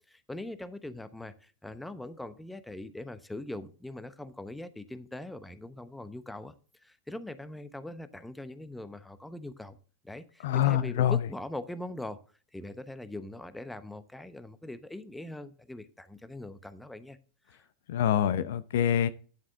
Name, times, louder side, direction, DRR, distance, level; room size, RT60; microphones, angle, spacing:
voice 1, 0.1-6.5 6.8-9.8 10.0-12.2 12.5-17.2 17.5-17.6, left 1 dB, 5° left, 13 dB, 0.9 m, -41 dB
voice 2, 10.4-11.2 17.9-19.1, left 10 dB, 60° left, 15 dB, 0.6 m, -25 dB
10.0 x 7.4 x 3.7 m, 0.39 s
figure-of-eight pair, 90°, 0 cm